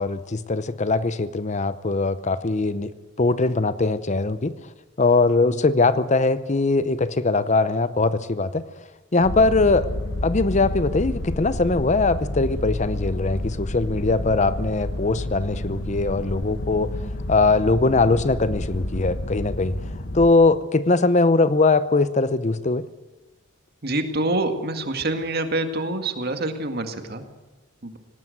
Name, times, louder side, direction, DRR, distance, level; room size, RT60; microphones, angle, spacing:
voice 1, 0.0-2.9 3.2-4.5 5.0-8.7 9.1-9.9 10.2-16.9 17.3-19.7 20.1-22.9, left 3 dB, 35° left, 14 dB, 0.7 m, -21 dB
sound 1, 9.2-20.3, left 1 dB, 65° left, 1.7 m, -30 dB
voice 2, 23.8-27.2 27.8-28.0, right 2 dB, 50° right, 7 dB, 2.0 m, -26 dB
18.5 x 18.5 x 7.9 m, 1.1 s
head